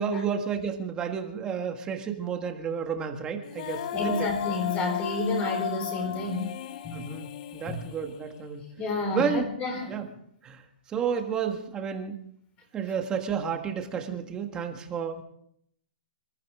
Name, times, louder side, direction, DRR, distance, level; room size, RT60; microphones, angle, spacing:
voice 1, 0.0-4.3 6.9-8.7 9.1-9.5 9.9-10.1 10.4-10.6 10.9-12.2 12.7-15.2, right 7 dB, 15° right, 4 dB, 1.6 m, -31 dB
Female singing, 3.4-8.6, left 9 dB, 45° left, 0.8 m, -35 dB
voice 2, 3.9-6.5 6.8-7.1 7.7-7.8 8.8-10.0, left 3 dB, 20° left, 4 dB, 4.2 m, -30 dB
26.0 x 13.5 x 3.7 m, 0.69 s
hypercardioid pair, 160°, 6 cm